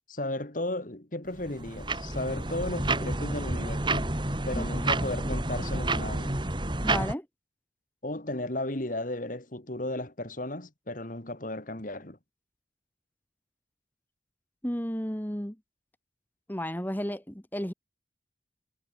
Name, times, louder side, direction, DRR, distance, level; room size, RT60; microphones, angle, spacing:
voice 1, 0.1-4.1 4.5-6.4 8.0-12.2, left 1 dB, 45° left, 2.2 m, -35 dB
sound 1, 1.4-7.1, right 2 dB, 25° right, 2.5 m, -30 dB
voice 2, 6.8-7.3 14.6-15.6 16.5-17.7, equal, 10° left, 1.9 m, -33 dB
head